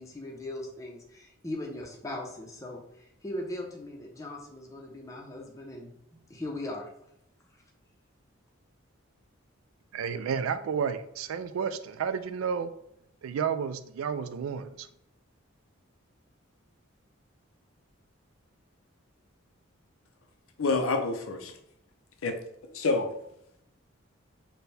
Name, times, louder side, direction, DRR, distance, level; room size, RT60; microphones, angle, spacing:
voice 1, 0.0-6.0 6.3-6.9, left 1 dB, 15° left, 0.6 m, -39 dB
voice 2, 9.9-12.7 13.2-14.9, right 7 dB, 80° right, 0.3 m, -31 dB
voice 3, 20.6-21.5 22.2-22.4 22.7-23.1, left 3 dB, 85° left, 0.6 m, -27 dB
4.3 x 2.2 x 3.4 m
head